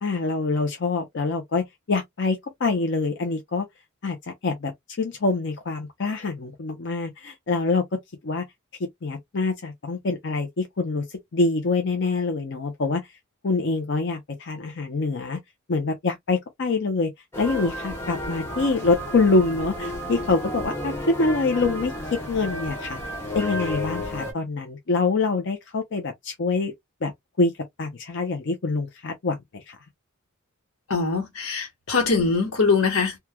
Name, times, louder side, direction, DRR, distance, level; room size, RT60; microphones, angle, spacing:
voice 1, 0.0-3.6 4.0-4.2 4.4-4.7 5.0-8.4 9.0-13.0 13.4-15.4 15.7-17.1 17.4-23.0 23.3-26.7 27.0-27.1 27.4-27.5 27.8-29.8, left 3 dB, 55° left, 0.6 m, -25 dB
sound 1, 17.3-24.3, left 1 dB, 10° left, 0.9 m, -32 dB
voice 2, 30.9-33.2, left 4 dB, 85° left, 1.1 m, -22 dB
3.0 x 2.2 x 2.2 m
head